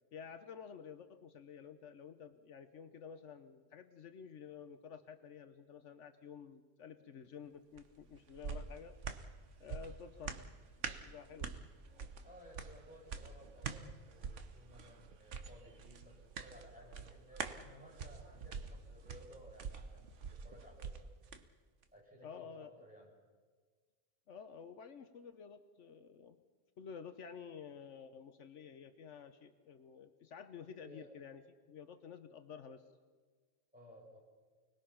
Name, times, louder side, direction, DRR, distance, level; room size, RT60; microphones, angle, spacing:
voice 1, 0.1-9.0 9.6-10.4 10.9-11.6 22.2-22.7 24.3-26.4 26.8-31.4 31.7-32.8, left 7 dB, 75° left, 9 dB, 1.2 m, -51 dB
sound 1, 7.8-21.4 21.8-21.9, right 5 dB, 75° right, 1.4 m, -46 dB
voice 2, 12.2-21.1 21.9-23.1 30.8-31.1 33.7-34.2, equal, 5° right, -4 dB, 7.6 m, -58 dB
29.5 x 20.5 x 5.8 m, 1.5 s
omnidirectional pair, 1.2 m